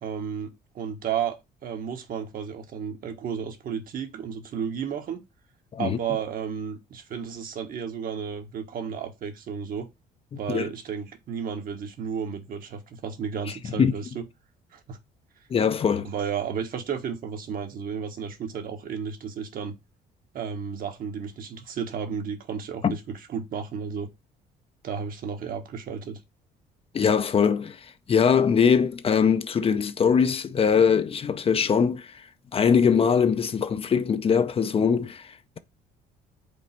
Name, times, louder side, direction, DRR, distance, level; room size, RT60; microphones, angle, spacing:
voice 1, 0.0-5.2 5.8-9.9 10.3-14.2 14.7-15.0 16.0-19.7 20.3-24.1 24.8-26.2, right 7 dB, 55° right, 1.5 m, -33 dB
voice 2, 15.5-16.1 22.8-22.9 26.9-32.3 32.5-35.6, left 6 dB, 35° left, 0.6 m, -22 dB
5.3 x 4.1 x 5.9 m
cardioid pair, 110°, 17 cm